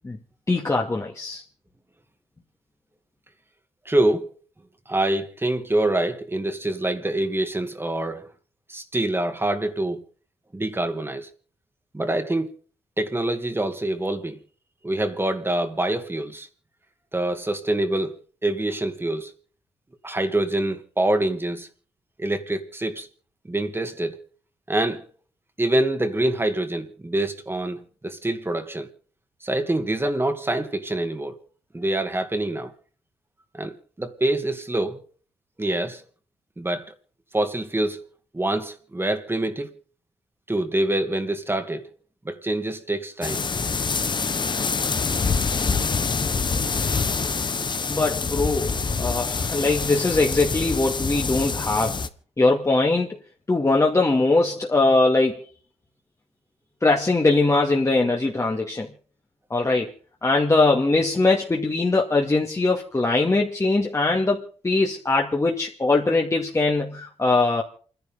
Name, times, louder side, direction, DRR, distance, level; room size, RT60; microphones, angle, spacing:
voice 1, 0.5-1.4 47.9-52.0 52.4-53.2 53.5-55.4 56.8-58.9 59.5-59.9 60.2-67.6, left 3 dB, 30° left, 2.2 m, -21 dB
voice 2, 3.9-4.3 4.9-8.3 8.7-10.0 10.5-11.3 11.9-12.5 13.0-14.4 14.8-16.5 17.1-19.3 20.0-21.7 22.2-23.1 23.5-24.2 24.7-25.0 25.6-28.9 29.4-31.4 31.7-32.7 33.5-35.0 35.6-36.0 36.6-36.9 37.3-38.1 38.3-39.7 40.5-41.8 42.2-43.4 46.7-46.8 47.5-47.7, right 1 dB, 20° right, 2.3 m, -25 dB
sound 1, 43.2-52.1, left 5 dB, 45° left, 1.3 m, -26 dB
28.5 x 11.0 x 3.9 m
supercardioid pair, 45°, 11 cm